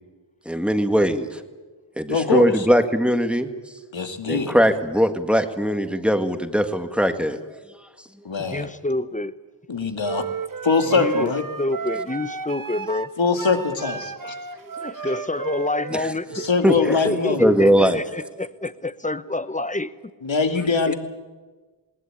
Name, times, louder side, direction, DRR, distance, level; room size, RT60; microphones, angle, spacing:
voice 1, 0.5-1.4 2.0-3.5 4.3-7.4 15.9-16.1 16.6-17.0 17.4-18.0, equal, ahead, 7 dB, 1.8 m, -20 dB
voice 2, 2.1-2.7 3.9-4.5 8.2-8.7 9.7-10.2 10.6-11.4 13.2-14.3 16.3-17.7 20.2-20.9, left 5 dB, 80° left, 6 dB, 2.2 m, -23 dB
voice 3, 8.4-9.3 10.9-11.3 11.6-13.1 14.8-16.4 16.9-19.9 20.9-21.0, left 2 dB, 15° left, 15 dB, 0.9 m, -27 dB
sound 1, 10.0-16.5, right 5 dB, 45° right, 0.9 m, -32 dB
20.5 x 19.0 x 8.9 m, 1.3 s
wide cardioid pair, 60°, 46 cm